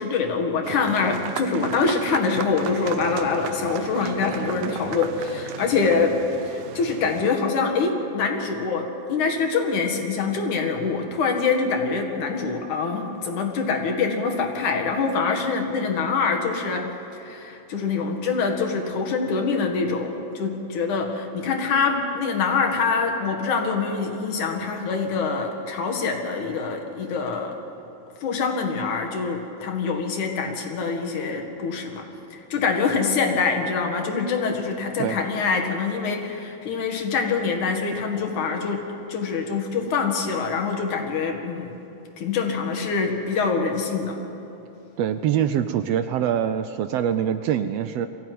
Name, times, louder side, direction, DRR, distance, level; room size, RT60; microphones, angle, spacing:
voice 1, 0.0-6.2 6.4-16.9 17.1-27.6 28.2-38.8 39.1-41.8 42.2-44.2, left 5 dB, 90° left, 3 dB, 3.4 m, -25 dB
sound 1, 0.6-7.3, right 9 dB, 90° right, 2.3 m, -35 dB
voice 2, 45.0-48.1, right 9 dB, 75° right, 10 dB, 1.6 m, -24 dB
22.5 x 15.5 x 9.4 m, 3.0 s
omnidirectional pair, 3.4 m